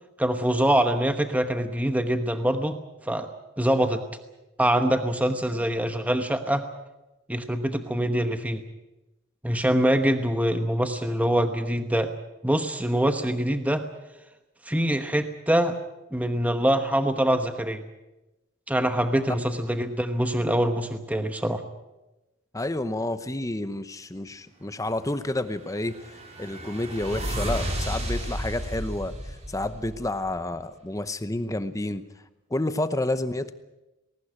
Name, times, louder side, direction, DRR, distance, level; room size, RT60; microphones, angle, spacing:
voice 1, 0.2-2.8 3.0-3.3 3.6-4.0 4.6-6.7 7.3-8.6 9.4-12.1 12.4-13.8 14.7-15.7 16.1-17.8 18.7-21.6, right 1 dB, 5° right, 7 dB, 1.0 m, -24 dB
voice 2, 22.5-32.0 32.5-33.5, left 1 dB, 15° left, 12 dB, 0.8 m, -30 dB
sound 1, 25.4-30.4, equal, 30° right, 4.1 m, -33 dB
20.0 x 18.5 x 8.7 m, 1.0 s
head